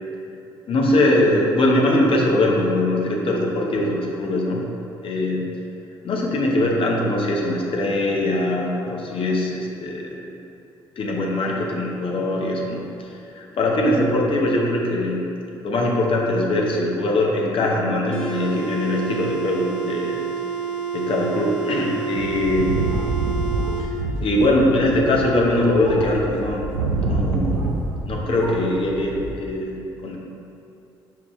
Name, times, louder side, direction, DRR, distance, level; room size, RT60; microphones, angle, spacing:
voice 1, 0.7-4.7 5.0-5.5 6.0-10.2 11.0-15.3 15.6-20.2 20.9-22.8 23.8-23.9 24.2-26.6 27.0-27.7 28.1-30.2, left 1 dB, 50° left, -1 dB, 1.0 m, -22 dB
sound 1, 18.1-23.9, right 7 dB, 10° left, 1.3 m, -29 dB
sound 2, 22.2-28.1 28.4-29.3, right 3 dB, 85° right, 0.5 m, -27 dB
5.6 x 4.7 x 3.6 m, 2.7 s
hypercardioid pair, 50°, 12 cm